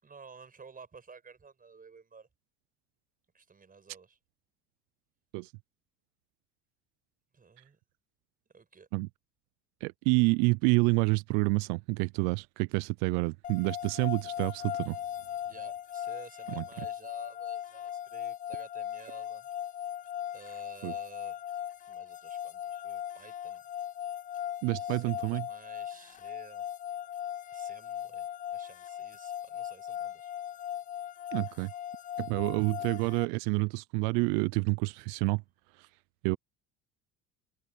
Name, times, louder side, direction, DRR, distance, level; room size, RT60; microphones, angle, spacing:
voice 1, 0.0-2.3 3.3-4.2 7.3-7.8 8.5-8.9 15.5-19.5 19.8-19.9 20.3-23.6 24.8-26.7 27.5-28.3 28.5-30.3, right 5 dB, 25° right, 5.9 m, -53 dB
voice 2, 9.8-15.0 16.6-16.7 20.8-20.9 24.6-25.4 31.3-31.7 32.2-35.4 35.8-35.9 36.2-36.4, right 29 dB, 85° right, 0.5 m, -28 dB
sound 1, 13.4-33.3, left 10 dB, 25° left, 0.3 m, -39 dB
supercardioid pair, 100°, 33 cm